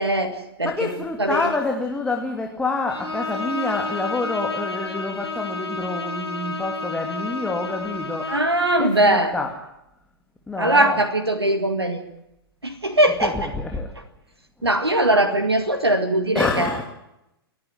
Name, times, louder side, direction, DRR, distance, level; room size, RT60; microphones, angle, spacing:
voice 1, 0.0-0.9 1.2-1.5 8.3-9.3 10.6-12.0 12.6-13.4 14.6-16.7, right 1 dB, 80° right, 6 dB, 2.1 m, -20 dB
voice 2, 0.6-8.4 8.8-9.5 10.5-11.0 13.2-13.9 16.3-16.8, left 3 dB, 5° left, 2 dB, 2.4 m, -27 dB
Bowed string instrument, 2.9-8.6, left 3 dB, 90° left, 5.3 m, -30 dB
29.0 x 10.5 x 9.9 m, 0.86 s
figure-of-eight pair, 110°, 13 cm